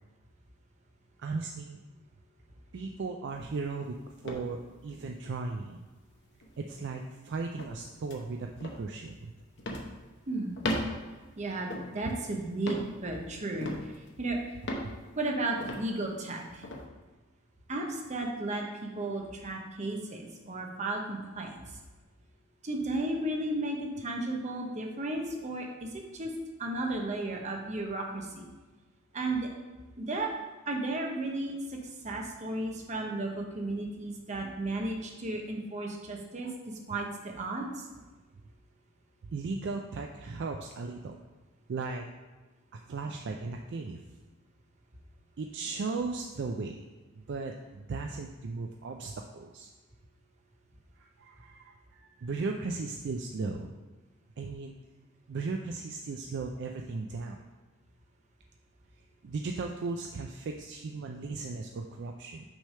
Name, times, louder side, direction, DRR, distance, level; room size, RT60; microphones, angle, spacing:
voice 1, 1.2-1.8 2.7-5.8 6.6-9.3 36.4-36.5 39.3-41.2 41.7-42.1 42.7-44.0 45.4-46.8 47.3-49.7 51.0-53.7 54.4-54.7 55.3-57.4 59.2-62.4, right 4 dB, 55° right, 2 dB, 0.4 m, -36 dB
sound 1, 3.3-3.7 4.2-5.1 5.5-5.6 6.4-6.8 7.6-7.8 8.1-8.2 8.6-8.8 9.6-10.0 10.6-11.1 11.7-12.1 12.6-13.0 13.6-14.1 14.6-15.0 15.6-15.9 16.6-16.8, left 1 dB, 55° left, 0.8 m, -36 dB
voice 2, 10.3-10.6 11.4-13.7 14.2-14.4 15.2-16.6 17.7-21.5 22.6-26.3 26.6-28.5 29.1-29.5 30.0-30.3 30.7-31.8 32.0-37.8, right 2 dB, 35° right, 1 dB, 0.9 m, -34 dB
6.2 x 3.3 x 5.5 m, 1.2 s
head